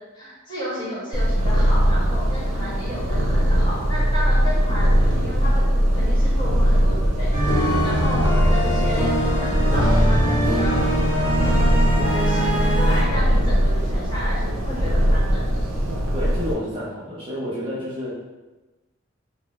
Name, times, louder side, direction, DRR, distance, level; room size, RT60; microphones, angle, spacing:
voice 1, 0.1-5.6 5.9-10.8 11.2-15.5, left 1 dB, 20° left, -11 dB, 1.1 m, -33 dB
Purr, 1.1-16.5, equal, 85° right, 0.5 m, -20 dB
sound 1, 7.3-13.0, equal, 80° left, 0.8 m, -22 dB
voice 2, 16.1-18.2, equal, 25° right, -10 dB, 0.6 m, -29 dB
2.5 x 2.0 x 3.0 m, 1.1 s
head